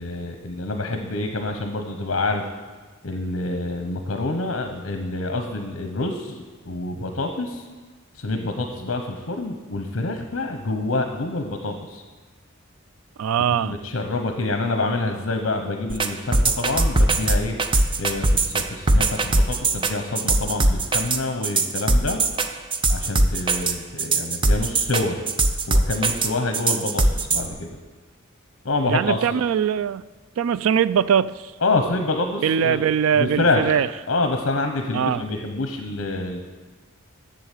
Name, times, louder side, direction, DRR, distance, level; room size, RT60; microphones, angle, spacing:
voice 1, 0.0-2.4 3.0-7.6 8.1-12.0 13.6-17.5 18.0-22.2 22.9-25.2 25.7-27.7 28.6-29.4 31.6-32.8 33.1-33.7 34.1-36.4, left 2 dB, 65° left, 5 dB, 0.9 m, -27 dB
voice 2, 13.2-13.8 28.9-30.1 30.4-31.5 32.4-33.9 34.9-35.3, right 8 dB, 75° right, 18 dB, 0.3 m, -21 dB
sound 1, 15.9-27.5, right 2 dB, 25° right, 0.5 m, -20 dB
7.8 x 7.4 x 8.3 m, 1.4 s
head